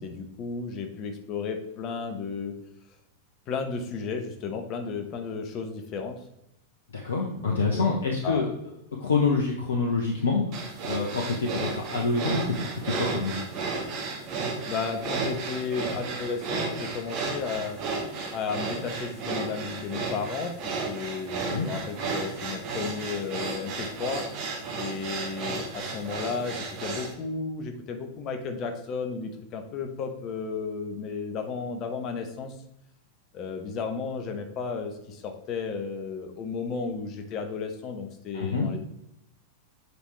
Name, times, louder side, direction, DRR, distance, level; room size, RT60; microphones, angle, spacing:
voice 1, 0.0-2.5 3.5-6.2 7.4-7.9 8.2-8.5 14.7-17.8 18.3-24.3 24.8-32.5 33.3-38.8, left 5 dB, 35° left, 5 dB, 1.0 m, -33 dB
voice 2, 6.9-8.5 9.0-13.4 21.4-21.7 38.3-38.7, left 4 dB, 65° left, 0 dB, 0.9 m, -27 dB
sound 1, 10.5-27.1, right 4 dB, 40° right, 1.5 m, -33 dB
8.1 x 5.0 x 3.2 m, 0.83 s
figure-of-eight pair, 90°, 0 cm